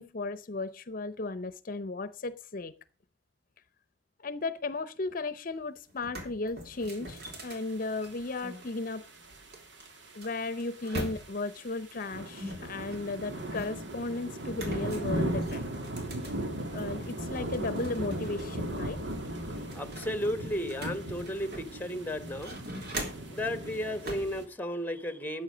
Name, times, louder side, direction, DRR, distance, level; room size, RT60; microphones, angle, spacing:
voice 1, 0.0-2.7 4.2-9.0 10.1-15.6 16.6-19.0, left 3 dB, 50° left, 0.7 m, -35 dB
sound 1, 5.5-5.6 5.9-8.6 9.5-11.6 12.4-14.0 14.5-17.0 17.4-18.4 18.8-18.9 19.2-21.9 22.3-23.4 24.0-24.4, right 1 dB, 65° right, 3.6 m, -42 dB
sound 2, 7.3-24.4, right 1 dB, 90° right, 2.2 m, -38 dB
voice 2, 19.5-22.5 22.9-25.4, equal, 10° left, 1.2 m, -34 dB
13.5 x 9.3 x 5.0 m
head